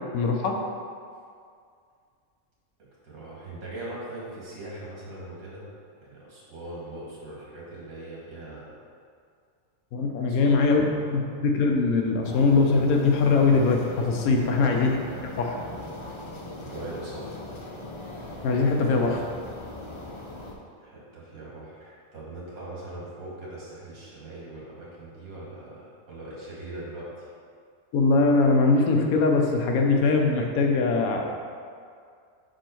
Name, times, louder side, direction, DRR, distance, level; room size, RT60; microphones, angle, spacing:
voice 1, 0.1-0.5 9.9-14.9 15.4-15.6 18.4-19.2 27.9-31.3, left 3 dB, 85° left, 2 dB, 1.2 m, -22 dB
voice 2, 3.0-5.7 5.9-8.7 10.3-10.9 11.1-11.2 14.6-14.9 15.1-15.2 15.7-16.1 16.6-17.3 20.8-27.3, right 1 dB, 80° right, -6 dB, 2.1 m, -40 dB
sound 1, 12.2-20.5, left 1 dB, 40° left, 0.4 m, -40 dB
5.3 x 4.7 x 4.4 m, 2.2 s
omnidirectional pair, 1.5 m